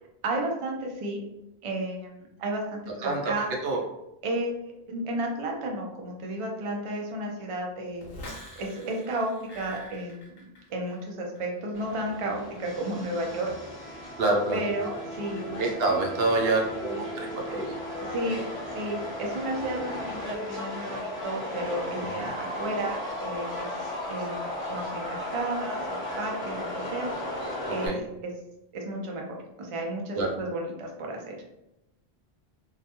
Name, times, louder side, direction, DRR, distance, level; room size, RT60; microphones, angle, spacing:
voice 1, 0.2-1.2 1.6-3.5 4.2-8.3 8.6-13.5 13.8-14.1 14.5-15.4 18.0-18.4 18.7-23.7 24.1-24.4 24.7-27.1 27.7-28.1 28.7-31.4, right 1 dB, 50° right, 0 dB, 0.4 m, -33 dB
voice 2, 2.9-3.3 3.6-3.8 14.2-14.6 15.6-17.8 22.0-22.3 27.8-28.0 30.1-30.3, right 2 dB, 70° right, 0 dB, 0.8 m, -27 dB
sound 1, 8.0-11.1 11.4-11.8, equal, 60° left, 0.8 m, -45 dB
Subway metro underground, 11.7-27.9, left 1 dB, 10° right, 0.9 m, -35 dB
2.3 x 2.1 x 2.8 m, 0.88 s
omnidirectional pair, 1.1 m